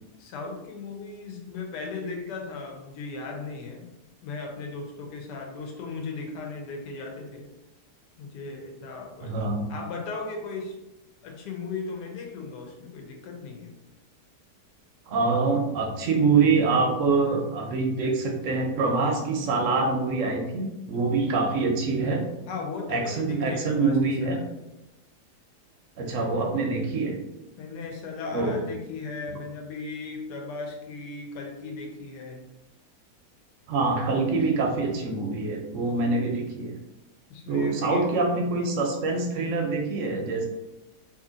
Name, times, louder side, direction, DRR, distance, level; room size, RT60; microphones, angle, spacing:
voice 1, 0.2-3.8 4.2-7.5 8.2-9.4 9.7-10.7 11.2-13.7 22.5-24.4 27.6-32.4 37.3-38.1, left 4 dB, 80° left, 1 dB, 1.3 m, -36 dB
voice 2, 9.2-9.7 15.1-22.3 22.9-24.4 26.0-27.2 28.3-28.6 33.7-36.7 37.5-40.5, right 3 dB, 65° right, 2 dB, 0.8 m, -25 dB
2.8 x 2.7 x 3.8 m, 0.96 s
omnidirectional pair, 1.8 m